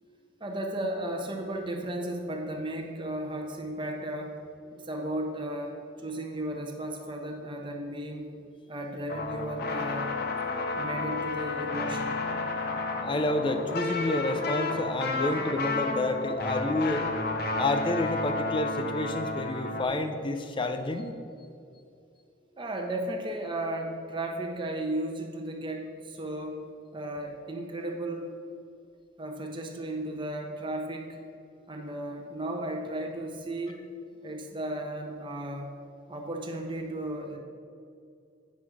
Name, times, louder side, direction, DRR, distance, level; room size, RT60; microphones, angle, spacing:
voice 1, 0.4-4.3 4.7-8.3 8.7-10.1 10.7-12.2 22.6-26.6 26.9-28.3 29.2-31.2 31.7-33.8 34.2-35.7 36.1-37.4, right 1 dB, 25° right, 2 dB, 0.8 m, -35 dB
sound 1, 9.1-19.8, left 3 dB, 50° left, 0.8 m, -31 dB
voice 2, 13.0-17.1 17.6-21.1, left 2 dB, 25° left, 7 dB, 0.5 m, -29 dB
8.2 x 6.1 x 4.8 m, 2.5 s
head